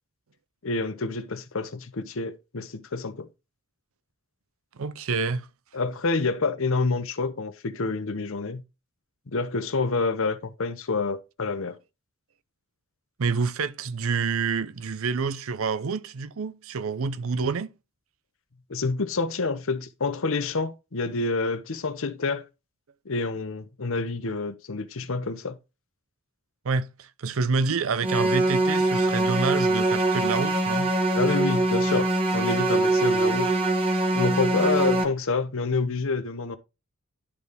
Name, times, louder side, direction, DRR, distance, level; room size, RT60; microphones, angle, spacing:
voice 1, 0.6-3.3 5.7-8.6 9.3-11.8 18.7-22.5 23.1-25.6 31.1-32.1 32.3-33.5 34.1-36.6, left 3 dB, 65° left, 0.9 m, -28 dB
voice 2, 4.8-5.5 13.2-17.7 26.6-30.9, right 4 dB, 65° right, 0.6 m, -28 dB
sound 1, 28.0-35.0, right 2 dB, 25° right, 1.2 m, -23 dB
11.5 x 4.0 x 3.5 m
head